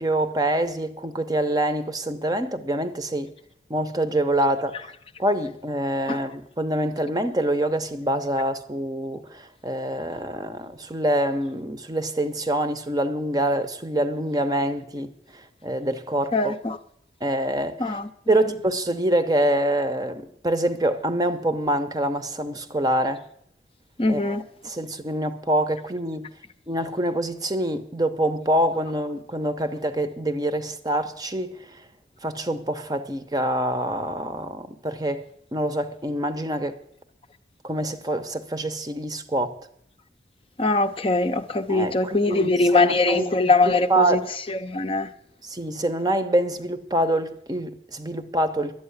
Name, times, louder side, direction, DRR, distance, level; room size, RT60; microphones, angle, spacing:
voice 1, 0.0-3.3 3.7-4.9 5.2-16.5 17.2-18.0 18.3-23.2 24.1-24.4 24.6-26.3 26.7-31.8 32.2-36.8 37.6-39.6 41.7-43.3 43.9-44.2 45.4-48.8, right 1 dB, 20° right, 0.7 m, -25 dB
voice 2, 16.3-16.8 17.8-18.1 24.0-24.4 40.6-44.2 44.5-45.1, left 3 dB, 30° left, 0.6 m, -22 dB
11.5 x 8.6 x 9.7 m
head